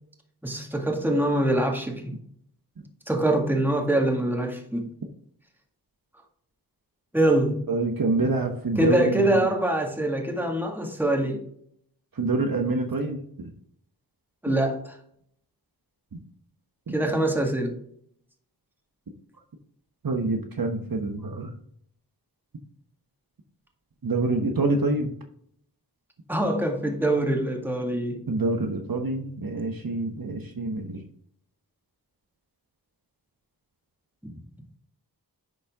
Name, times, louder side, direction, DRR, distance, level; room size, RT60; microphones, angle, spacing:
voice 1, 0.4-2.0 3.1-4.9 7.1-7.6 8.8-11.4 14.4-14.9 16.9-17.8 26.3-28.2, right 1 dB, 5° right, 1 dB, 1.9 m, -24 dB
voice 2, 7.7-9.5 12.2-13.5 16.9-17.0 20.0-21.5 24.0-25.1 28.3-31.0, right 3 dB, 60° right, 4 dB, 1.1 m, -26 dB
10.5 x 4.1 x 3.5 m, 0.65 s
wide cardioid pair, 50°, 39 cm